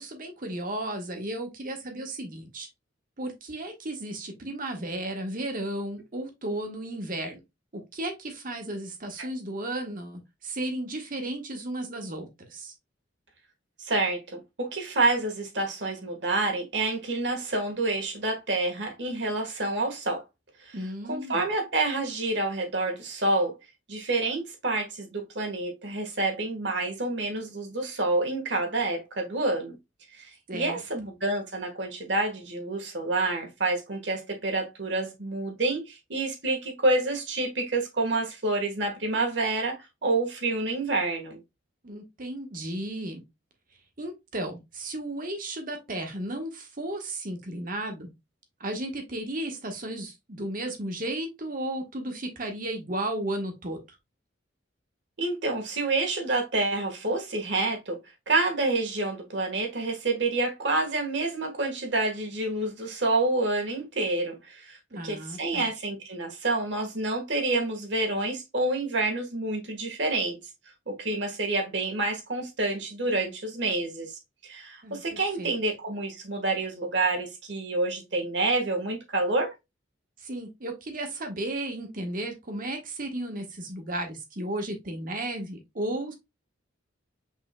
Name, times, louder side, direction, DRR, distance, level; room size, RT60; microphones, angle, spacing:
voice 1, 0.0-2.7 3.2-7.4 7.7-12.7 20.7-21.4 30.5-30.8 41.8-43.2 44.0-48.1 48.6-53.8 64.9-65.7 74.8-75.5 80.2-86.1, right 1 dB, 50° right, 1.3 m, -34 dB
voice 2, 13.9-20.2 20.7-20.8 21.1-23.6 23.9-29.8 30.1-41.4 55.2-58.0 58.3-64.8 65.0-70.4 70.9-74.1 74.4-79.5, right 2 dB, 65° right, 1.4 m, -28 dB
5.7 x 3.6 x 2.2 m
head